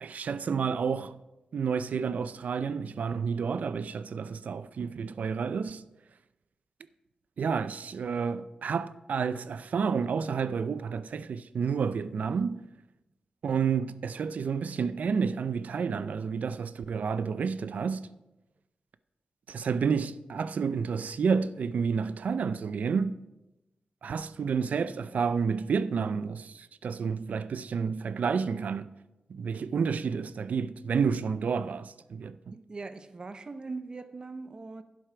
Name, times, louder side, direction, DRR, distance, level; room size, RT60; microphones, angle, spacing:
voice 1, 0.0-1.2 1.5-5.8 7.4-12.6 13.4-18.1 19.5-23.2 24.0-28.9 29.3-32.4, right 6 dB, 80° right, 0.4 m, -30 dB
voice 2, 32.5-34.8, right 3 dB, 35° right, 0.6 m, -41 dB
11.0 x 7.9 x 4.9 m
wide cardioid pair, 150°, 3 cm